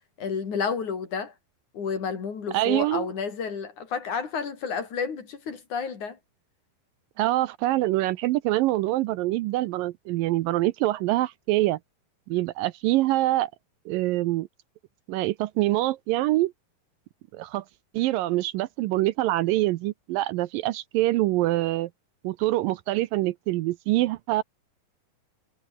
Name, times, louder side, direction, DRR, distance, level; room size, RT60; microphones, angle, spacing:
voice 1, 0.2-1.3 1.7-6.2, left 6 dB, 55° left, 4.7 m, -31 dB
voice 2, 2.5-3.1 7.2-11.8 12.3-13.5 13.9-14.5 15.1-16.5 17.3-17.6 17.9-21.9 22.2-24.4, right 17 dB, 80° right, 2.2 m, -25 dB
omnidirectional pair, 4.3 m